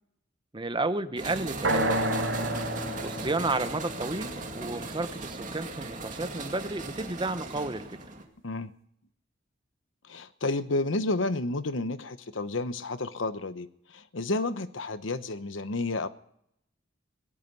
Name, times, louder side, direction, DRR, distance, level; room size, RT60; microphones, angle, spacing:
voice 1, 0.5-2.0 3.0-8.0, right 2 dB, 25° right, 11 dB, 0.9 m, -32 dB
sound 1, 1.2-8.3, right 3 dB, 40° right, 2.4 m, -38 dB
sound 2, 1.6-5.6, right 1 dB, 75° right, 4.7 m, -31 dB
voice 2, 8.4-8.7 10.1-16.1, left 2 dB, 70° left, 12 dB, 1.0 m, -31 dB
19.0 x 12.5 x 5.4 m, 0.70 s
head